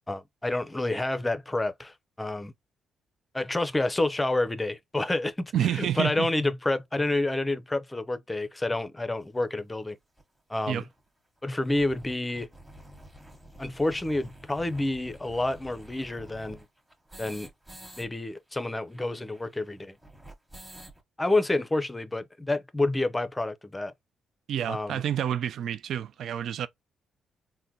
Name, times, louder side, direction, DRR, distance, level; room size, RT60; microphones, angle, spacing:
voice 1, 0.1-2.5 3.3-10.0 10.5-10.8 11.4-12.5 13.6-16.7 17.2-17.5 18.0-19.9 21.2-23.9 24.7-25.0, left 2 dB, 15° left, 0.5 m, -29 dB
voice 2, 5.5-6.3 10.7-10.8 24.5-26.7, right 10 dB, 75° right, 0.4 m, -29 dB
sound 1, 9.4-9.5 10.2-10.3 10.5-10.6 10.9-11.0 11.4-18.1 18.3-18.4 18.6-21.0, right 1 dB, 5° right, 1.1 m, -49 dB
3.7 x 2.1 x 2.7 m
cardioid pair, 90°, 0 cm